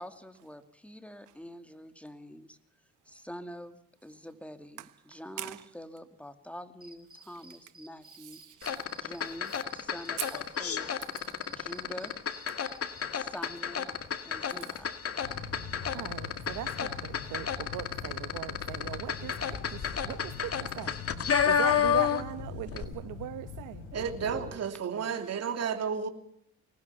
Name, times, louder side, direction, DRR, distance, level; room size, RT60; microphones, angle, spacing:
voice 1, 0.0-2.6 3.1-11.0 11.5-12.1 13.1-13.9 14.2-14.9 24.0-24.6, equal, 5° left, 2.6 m, -46 dB
voice 2, 4.8-5.7 7.2-7.4 8.0-8.9 10.2-10.3 15.9-21.0 21.4-23.9 24.9-25.1, right 13 dB, 90° right, 1.3 m, -40 dB
sound 1, 6.8-13.1, right 2 dB, 30° right, 4.5 m, -54 dB
sound 2, 8.6-22.4 22.7-22.8, left 8 dB, 50° left, 2.2 m, -31 dB
sound 3, 15.2-24.5, left 5 dB, 75° left, 4.7 m, -43 dB
voice 3, 23.9-26.1, right 6 dB, 55° right, 2.9 m, -32 dB
24.5 x 19.5 x 5.8 m
cardioid pair, 90°, 30 cm